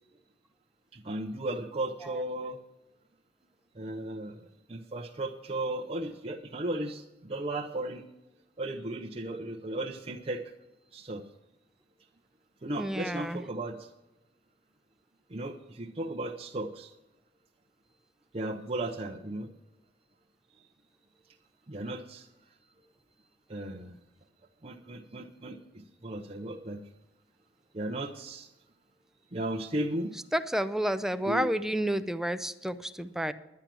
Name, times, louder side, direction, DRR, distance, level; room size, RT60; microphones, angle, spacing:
voice 1, 0.9-2.6 3.8-4.4 4.7-8.1 8.6-10.4 10.9-11.2 12.6-13.9 15.3-16.9 18.3-19.5 21.7-22.3 23.5-24.0 24.6-26.8 27.7-28.5 29.3-30.1 31.3-31.5, right 1 dB, 30° right, -1 dB, 0.7 m, -35 dB
voice 2, 12.8-13.4 30.3-33.3, equal, 5° right, 11 dB, 0.5 m, -30 dB
10.5 x 10.5 x 6.1 m, 0.98 s
head